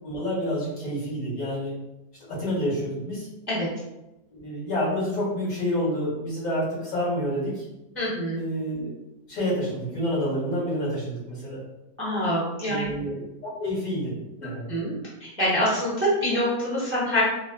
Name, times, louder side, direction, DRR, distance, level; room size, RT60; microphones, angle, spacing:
voice 1, 0.0-1.7 2.3-3.3 4.3-7.6 8.3-8.9 9.3-11.6 12.7-14.1 14.4-14.7, equal, 70° left, -8 dB, 2.1 m, -28 dB
voice 2, 7.9-8.4 12.0-12.9 14.7-14.9 15.4-17.2, equal, 10° right, -8 dB, 0.6 m, -25 dB
4.0 x 2.0 x 2.3 m, 0.96 s
omnidirectional pair, 1.6 m